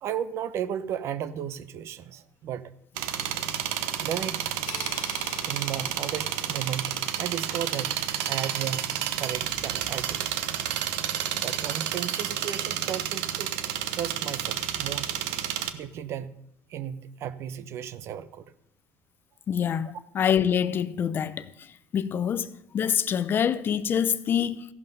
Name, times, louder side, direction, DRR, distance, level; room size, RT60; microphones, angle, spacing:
voice 1, 0.0-2.7 4.0-4.4 5.4-8.0 8.3-10.3 11.3-13.5 13.9-15.1 15.7-16.4 16.7-18.5, right 9 dB, 60° right, 0.8 m, -34 dB
sound 1, 3.0-15.7, right 10 dB, 85° right, 1.0 m, -30 dB
sound 2, 4.7-7.1, left 11 dB, 85° left, 1.1 m, -45 dB
voice 2, 19.5-19.9 20.1-21.5 21.9-24.7, left 8 dB, 45° left, 0.7 m, -25 dB
15.0 x 11.0 x 5.4 m
supercardioid pair, 100°, 5 cm